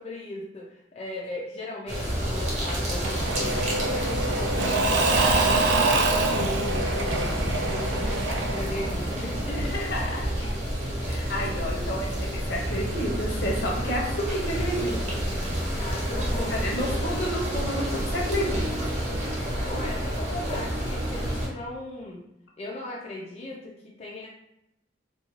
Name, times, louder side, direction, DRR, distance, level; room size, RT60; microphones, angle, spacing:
voice 1, 0.0-5.0 5.5-10.3 10.7-10.8 11.7-11.9 15.8-16.5 16.9-17.0 19.6-22.2 22.6-24.3, left 2 dB, 35° left, -4 dB, 0.4 m, -37 dB
sound 1, 1.9-21.5, equal, 40° right, 0.8 m, -29 dB
Engine / Mechanisms / Drill, 3.0-9.7, right 3 dB, 70° right, 0.4 m, -26 dB
voice 2, 5.1-5.6 9.5-10.2 11.1-15.2 16.5-18.7, equal, 65° left, -1 dB, 0.7 m, -30 dB
2.4 x 2.2 x 3.0 m, 0.84 s
head